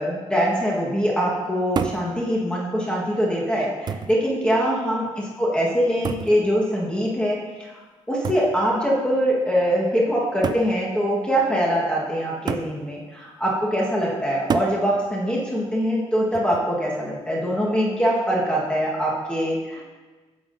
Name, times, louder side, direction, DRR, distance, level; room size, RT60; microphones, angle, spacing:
voice 1, 0.0-7.8 8.1-19.8, equal, 10° left, -4 dB, 1.3 m, -23 dB
sound 1, 1.8-2.1 3.1-3.2 3.9-4.2 6.0-6.4 8.2-8.5 9.6-9.7 10.4-10.7 12.5-12.8 14.5-14.8 16.3-16.7, right 6 dB, 35° right, 0.4 m, -28 dB
8.7 x 7.3 x 2.6 m, 1.3 s
cardioid pair, 110°, 12 cm